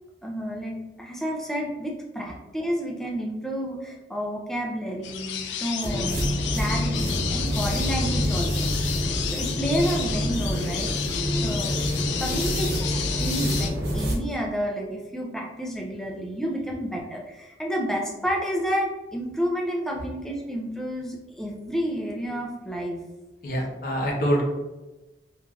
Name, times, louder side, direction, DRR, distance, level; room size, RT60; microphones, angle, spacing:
voice 1, 0.2-9.0 9.3-10.9 11.4-11.8 12.2-23.0, equal, 5° left, -2 dB, 0.4 m, -30 dB
sound 1, 5.0-13.7, left 8 dB, 85° left, 0.3 m, -32 dB
sound 2, 5.8-14.2, equal, 85° right, 1.1 m, -27 dB
voice 2, 23.4-24.4, equal, 50° left, -2 dB, 0.7 m, -25 dB
3.1 x 2.4 x 2.3 m, 1.1 s
head